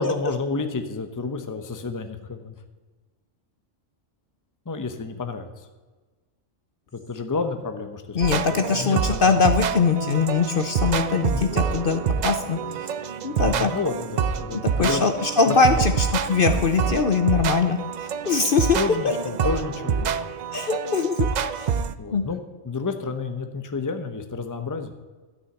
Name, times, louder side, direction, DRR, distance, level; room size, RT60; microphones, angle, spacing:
voice 1, 0.0-2.5 4.7-5.5 6.9-9.2 11.3-11.5 13.4-15.0 15.4-15.8 18.7-20.1 22.0-24.9, left 4 dB, 15° left, 8 dB, 0.8 m, -30 dB
voice 2, 8.1-12.6 13.2-13.7 14.5-17.8 18.3-18.8 20.5-21.3 21.6-21.7 22.1-22.2, left 5 dB, 50° left, 7 dB, 0.9 m, -22 dB
sound 1, 8.2-21.9, right 7 dB, 75° right, 0.4 m, -27 dB
13.0 x 6.3 x 8.2 m, 1.3 s
omnidirectional pair, 1.3 m